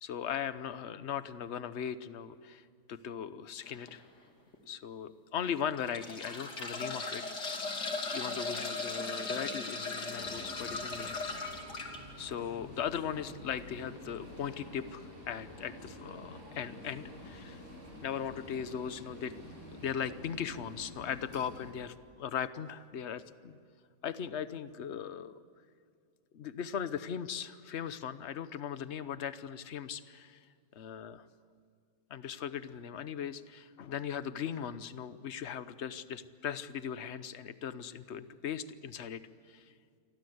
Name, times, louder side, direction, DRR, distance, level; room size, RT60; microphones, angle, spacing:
voice 1, 0.0-4.0 4.7-7.6 8.1-11.3 12.2-17.6 18.0-19.3 19.7-23.6 24.0-25.4 26.3-30.4 30.7-31.3 32.1-39.2 39.5-39.7, left 8 dB, 50° left, 13 dB, 1.0 m, -39 dB
sound 1, 3.6-3.9 4.5-4.6 5.6-12.0 13.6-13.7 14.0-14.1, left 3 dB, 70° left, 3.4 m, -37 dB
sound 2, 10.1-21.7, left 1 dB, 40° right, 6.9 m, -49 dB
28.5 x 23.0 x 8.0 m, 2.3 s
omnidirectional pair, 1.9 m